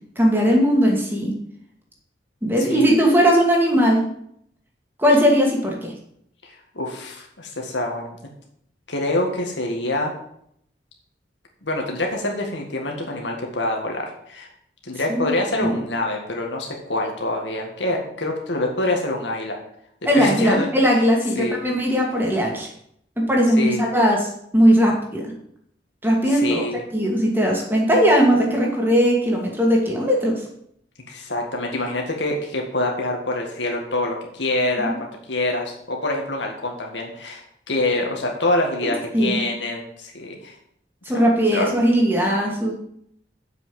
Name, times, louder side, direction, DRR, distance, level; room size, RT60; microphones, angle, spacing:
voice 1, 0.2-1.3 2.4-4.0 5.0-5.9 15.1-15.8 20.1-22.7 23.2-25.2 26.0-26.6 26.9-30.3 34.8-34.9 39.1-39.4 41.1-42.7, equal, 10° right, -1 dB, 2.3 m, -19 dB
voice 2, 6.4-8.2 8.9-10.1 11.6-14.5 14.8-19.6 20.2-20.7 21.4-21.6 23.6-23.8 26.3-26.8 31.1-40.5 41.1-41.2 41.5-41.7, left 2 dB, 85° left, 1 dB, 1.9 m, -26 dB
7.7 x 6.1 x 7.7 m, 0.70 s
head